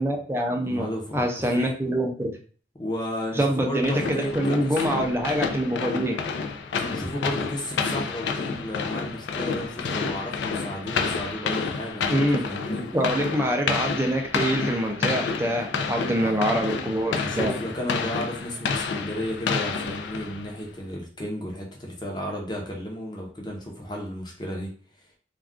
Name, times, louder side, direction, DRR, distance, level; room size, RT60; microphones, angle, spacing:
voice 1, 0.0-0.9 1.1-2.3 3.3-6.2 12.1-12.5 12.9-17.5, right 1 dB, 15° right, 2 dB, 0.4 m, -25 dB
voice 2, 0.6-1.7 2.8-4.9 6.8-12.1 12.5-12.8 16.2-16.3 17.1-24.7, equal, 25° left, -1 dB, 0.7 m, -33 dB
sound 1, 3.8-20.6, left 5 dB, 90° left, 0.3 m, -29 dB
2.4 x 2.3 x 3.5 m, 0.42 s
head